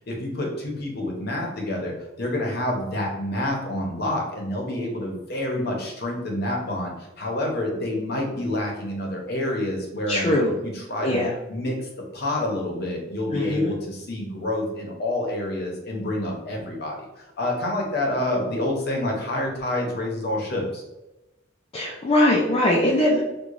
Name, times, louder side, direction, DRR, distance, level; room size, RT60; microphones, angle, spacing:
voice 1, 0.1-10.3 10.6-11.2 11.5-11.9 12.1-20.8, left 1 dB, 50° left, 0 dB, 0.8 m, -28 dB
voice 2, 10.1-10.5 11.0-11.3 13.3-13.7 21.7-23.2, left 1 dB, 30° left, -4 dB, 0.4 m, -21 dB
4.7 x 2.3 x 2.5 m, 0.99 s
head